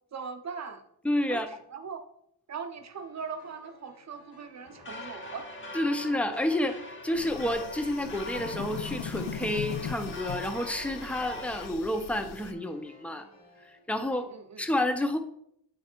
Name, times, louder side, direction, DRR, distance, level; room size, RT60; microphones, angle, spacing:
voice 1, 0.1-0.9 1.3-2.0 2.5-5.5 14.1-14.6, right 5 dB, 40° right, 8 dB, 0.6 m, -40 dB
voice 2, 1.0-1.5 5.7-6.8 7.0-13.2 13.6-14.3 14.6-15.2, left 1 dB, 5° left, 7 dB, 0.4 m, -30 dB
sound 1, 2.7-13.8, left 2 dB, 80° left, 2.2 m, -57 dB
sound 2, 4.7-11.7, left 2 dB, 25° left, 0.8 m, -42 dB
sound 3, 7.2-12.5, left 7 dB, 65° left, 0.6 m, -39 dB
8.9 x 3.2 x 4.3 m, 0.72 s
wide cardioid pair, 150°, 44 cm